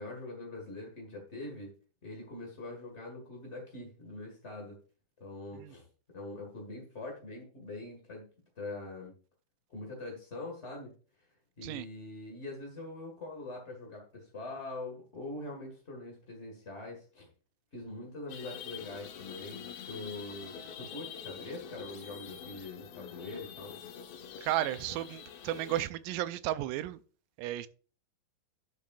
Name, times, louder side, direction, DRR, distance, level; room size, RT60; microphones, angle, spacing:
voice 1, 0.0-1.7 2.0-4.8 5.2-5.9 6.1-8.2 8.6-9.1 9.7-10.9 11.2-11.3 11.6-17.3 17.7-23.8, left 2 dB, 40° left, 0.9 m, -43 dB
sound 1, 18.3-25.9, left 8 dB, 65° left, 1.8 m, -46 dB
voice 2, 24.4-27.0 27.4-27.7, right 14 dB, 80° right, 2.0 m, -33 dB
11.5 x 7.3 x 2.4 m
omnidirectional pair, 4.0 m